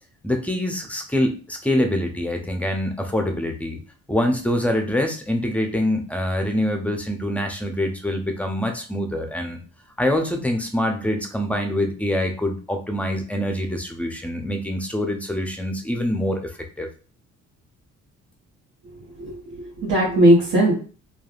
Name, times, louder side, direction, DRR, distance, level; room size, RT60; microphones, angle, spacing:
voice 1, 0.2-3.8 4.1-9.6 10.0-16.9, left 1 dB, 5° left, 4 dB, 0.5 m, -25 dB
voice 2, 19.2-20.7, right 1 dB, 80° right, -6 dB, 1.0 m, -18 dB
3.2 x 2.3 x 2.4 m, 0.39 s
cardioid pair, 90°, 30 cm